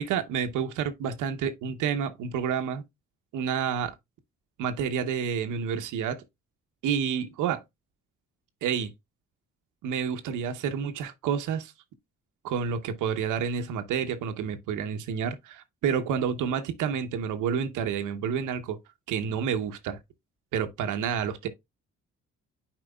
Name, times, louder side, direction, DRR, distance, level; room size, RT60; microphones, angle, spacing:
voice 1, 0.0-2.8 3.3-3.9 4.6-6.2 6.8-7.6 8.6-8.9 9.8-11.7 12.4-18.8 19.1-20.0 20.5-21.5, right 7 dB, 90° right, 0.9 m, -29 dB
9.9 x 4.5 x 2.2 m
cardioid pair, 90°, 30 cm